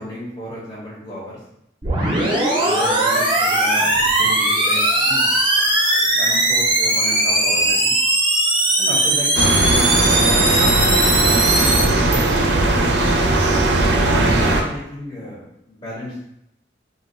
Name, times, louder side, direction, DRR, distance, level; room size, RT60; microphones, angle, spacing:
voice 1, 0.0-1.4 2.6-5.3 6.2-7.9 8.8-11.1 11.6-12.5 13.0-13.4 13.8-16.2, left 1 dB, 25° left, -6 dB, 0.7 m, -33 dB
sound 1, 1.8-11.8, right 1 dB, 25° right, 0.6 m, -18 dB
sound 2, 9.4-14.6, right 2 dB, 70° right, 0.5 m, -18 dB
2.6 x 2.2 x 4.1 m, 0.79 s
head